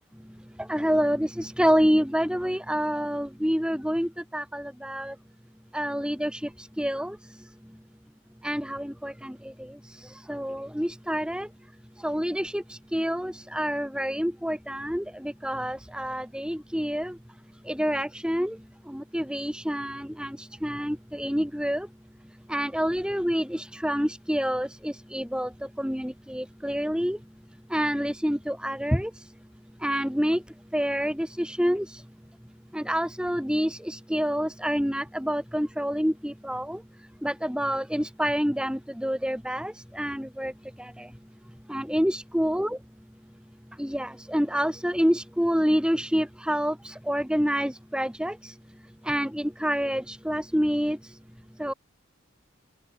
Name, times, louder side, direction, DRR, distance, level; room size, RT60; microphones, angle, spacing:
voice 1, 0.7-5.1 5.7-6.4 6.8-7.2 8.4-9.3 10.3-11.5 12.0-17.1 17.7-18.6 18.9-21.9 22.5-25.5 25.8-27.2 27.7-29.1 29.8-30.4 30.7-31.9 32.7-36.8 37.2-40.5 40.8-41.1 41.7-42.8 43.8-48.5 49.1-51.0 51.6-51.7, equal, 5° right, 5.3 m, -27 dB
open air
head